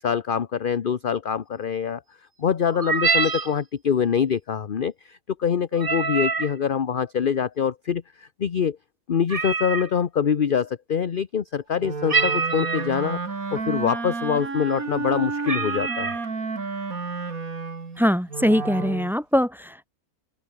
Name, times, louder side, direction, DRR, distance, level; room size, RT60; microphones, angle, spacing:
voice 1, 0.0-2.0 2.4-8.8 9.1-13.2 13.5-16.1, left 7 dB, 40° left, 0.9 m, -24 dB
sound 1, 2.7-3.5 5.7-6.5 9.3-9.9 12.1-12.9 13.7-13.8 14.2-14.5 15.0-15.1 15.4-16.2, right 4 dB, 35° right, 1.7 m, -25 dB
Wind instrument woodwind instrument, 11.8-19.1, right 4 dB, 65° right, 3.2 m, -31 dB
voice 2, 18.0-19.9, equal, ahead, 2.4 m, -22 dB
open air
omnidirectional pair, 1.6 m